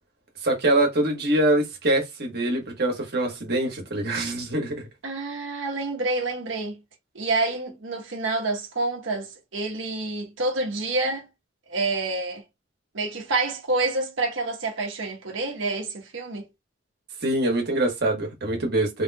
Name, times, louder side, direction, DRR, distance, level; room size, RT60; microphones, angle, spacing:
voice 1, 0.4-4.9 17.2-19.0, right 1 dB, 50° right, 1.5 m, -24 dB
voice 2, 5.0-6.7 7.1-11.2 11.7-12.4 12.9-16.4, right 2 dB, 70° right, 1.1 m, -28 dB
3.4 x 3.0 x 2.3 m
head